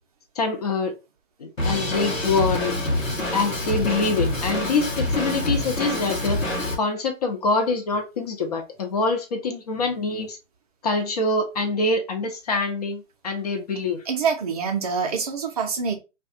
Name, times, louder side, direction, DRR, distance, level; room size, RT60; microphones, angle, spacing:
voice 1, 0.4-0.9 1.4-2.8 3.3-6.4 6.8-10.4 10.8-14.0, left 3 dB, 35° left, 4 dB, 0.4 m, -25 dB
Drum kit, 1.6-6.7, left 1 dB, 85° left, 1.0 m, -26 dB
voice 2, 14.0-15.9, right 6 dB, 30° right, 3 dB, 0.4 m, -25 dB
2.3 x 2.1 x 2.5 m, 0.27 s
figure-of-eight pair, 115°, 38 cm